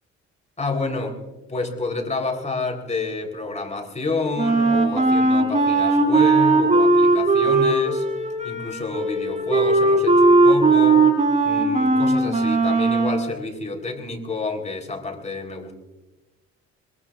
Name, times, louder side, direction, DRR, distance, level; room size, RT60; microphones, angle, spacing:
voice 1, 0.6-1.2 1.5-8.1 8.4-11.1 11.4-15.7, left 3 dB, 25° left, 2 dB, 3.8 m, -29 dB
Wind instrument woodwind instrument, 4.4-13.2, right 3 dB, 25° right, 4.9 m, -18 dB
22.5 x 22.5 x 2.5 m, 1.1 s
cardioid pair, 90°, 30 cm